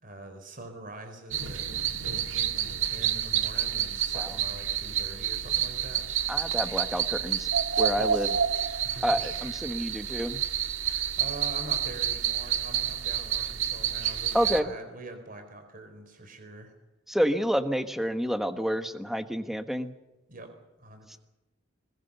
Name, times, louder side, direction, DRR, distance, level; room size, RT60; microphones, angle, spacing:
voice 1, 0.0-1.7 2.5-6.5 7.9-8.3 8.7-9.9 10.8-16.7 20.3-20.5 20.8-21.2, right 2 dB, 45° right, 7 dB, 4.2 m, -44 dB
sound 1, 1.3-14.6, right 9 dB, 85° right, 1.7 m, -29 dB
voice 2, 6.3-7.5 7.8-8.3 9.0-10.4 14.3-14.7 17.1-19.9, equal, ahead, 8 dB, 1.2 m, -28 dB
22.0 x 21.5 x 6.9 m, 1.0 s
head